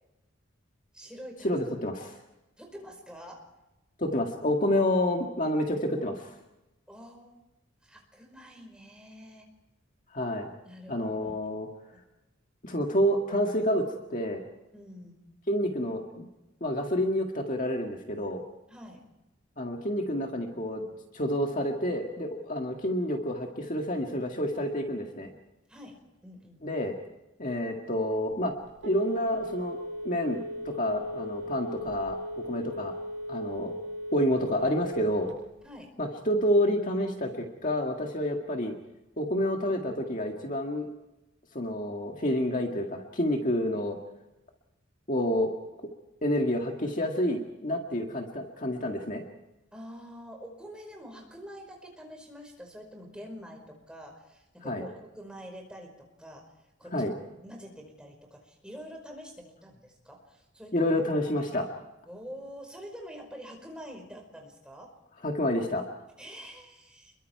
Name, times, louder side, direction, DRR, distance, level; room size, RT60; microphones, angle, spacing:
voice 1, 0.9-1.6 2.6-3.5 6.9-7.4 7.8-9.5 10.6-11.0 11.9-12.1 14.7-15.2 18.7-19.0 25.7-26.6 35.6-35.9 49.7-56.5 56.8-57.1 57.4-60.9 62.1-64.9 66.2-67.1, equal, 5° right, 1 dB, 5.0 m, -46 dB
voice 2, 1.4-2.2 4.0-6.3 10.1-10.5 10.9-11.7 12.6-14.4 15.5-16.3 16.6-18.4 19.6-20.8 21.1-25.3 26.6-26.9 27.4-28.5 28.8-29.8 30.0-30.4 30.7-32.2 32.4-32.9 33.3-33.7 34.1-35.3 36.0-38.7 39.2-40.9 41.5-44.0 45.1-45.5 46.2-49.2 54.7-54.8 56.9-57.1 60.7-61.7 65.2-65.8, left 1 dB, 40° left, 2 dB, 1.9 m, -28 dB
Telephone, 28.3-35.6, equal, 75° right, 6.1 m, -37 dB
29.0 x 22.5 x 4.7 m, 0.97 s
head